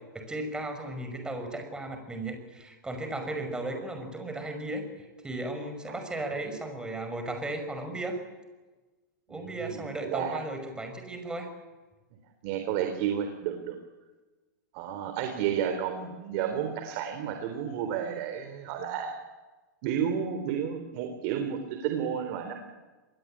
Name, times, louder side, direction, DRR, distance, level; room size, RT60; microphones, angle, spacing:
voice 1, 0.1-4.8 5.2-8.2 9.3-11.5, right 2 dB, 5° right, 6 dB, 5.7 m, -35 dB
voice 2, 9.3-10.4 12.4-13.8 14.7-19.2 19.8-22.5, right 8 dB, 45° right, 6 dB, 3.7 m, -31 dB
27.0 x 21.0 x 8.8 m, 1.2 s
hypercardioid pair, 140°, 11 cm